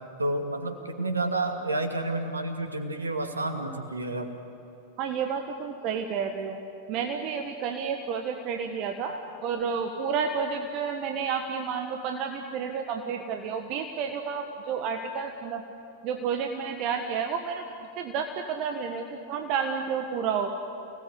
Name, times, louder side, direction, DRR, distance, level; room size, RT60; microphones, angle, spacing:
voice 1, 0.2-4.3 9.1-9.2, right 2 dB, 80° right, 6 dB, 2.4 m, -30 dB
voice 2, 5.0-6.6 6.9-9.1 9.4-15.6 16.0-17.6 18.0-20.5, right 6 dB, 40° right, 5 dB, 1.5 m, -30 dB
29.5 x 19.0 x 8.3 m, 2.8 s
figure-of-eight pair, 90°, 0 cm